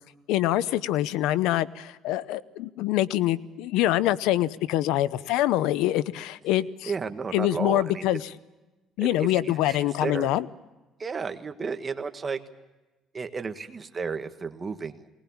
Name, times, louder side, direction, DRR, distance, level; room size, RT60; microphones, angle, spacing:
voice 1, 0.3-6.9 7.3-8.2 9.0-10.5, left 14 dB, 90° left, 17 dB, 0.7 m, -25 dB
voice 2, 6.9-8.0 9.0-10.3 11.0-12.4 13.1-15.1, right 5 dB, 25° right, 8 dB, 1.5 m, -33 dB
20.5 x 20.5 x 7.2 m, 1.1 s
cardioid pair, 130°, 0 cm